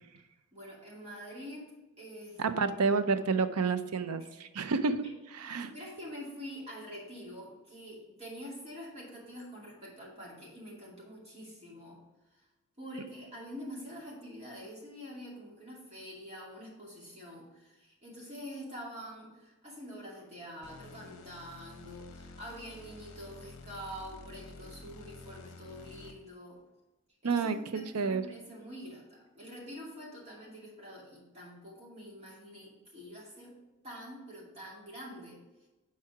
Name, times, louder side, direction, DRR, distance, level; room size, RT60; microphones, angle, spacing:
voice 1, 0.5-1.7 2.0-3.0 4.2-4.3 5.4-12.0 12.8-26.6 27.2-33.5 33.8-35.4, equal, 30° right, -5 dB, 2.4 m, -46 dB
voice 2, 2.4-5.1 5.3-5.7 27.2-27.6 27.9-28.2, right 4 dB, 80° right, 11 dB, 0.6 m, -29 dB
sound 1, 20.6-26.4, left 3 dB, 65° left, 0.8 m, -50 dB
7.3 x 4.8 x 4.8 m, 1.1 s
head